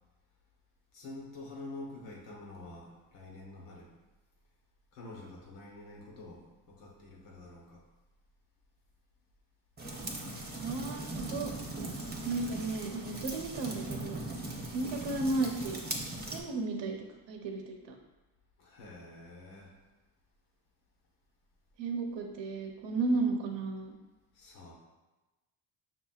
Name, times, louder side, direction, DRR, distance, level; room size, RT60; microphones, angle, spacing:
voice 1, 0.9-3.9 4.9-7.8 18.6-19.7 24.3-24.7, left 2 dB, 85° left, -2 dB, 1.3 m, -47 dB
sound 1, 9.8-16.4, right 2 dB, 20° right, 0.8 m, -39 dB
voice 2, 10.5-11.5 12.2-14.2 14.7-15.8 16.3-16.9 17.3-17.9 21.8-23.9, right 3 dB, 60° right, 2 dB, 0.8 m, -34 dB
6.0 x 2.9 x 2.4 m, 1.1 s
cardioid pair, 80°, 50 cm